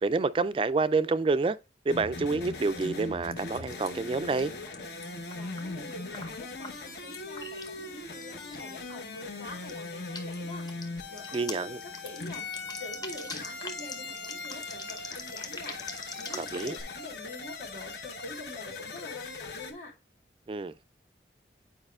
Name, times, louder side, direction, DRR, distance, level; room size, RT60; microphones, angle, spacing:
voice 1, 0.0-1.6 1.9-4.5 11.3-11.8 16.4-16.8 20.5-20.8, right 3 dB, 30° right, 0.3 m, -28 dB
sound 1, 1.9-19.7, left 3 dB, 60° left, 1.0 m, -40 dB
sound 2, 2.3-16.8, left 3 dB, 20° left, 0.8 m, -46 dB
voice 2, 5.3-19.9, left 2 dB, 85° left, 2.6 m, -45 dB
8.9 x 4.8 x 2.3 m
head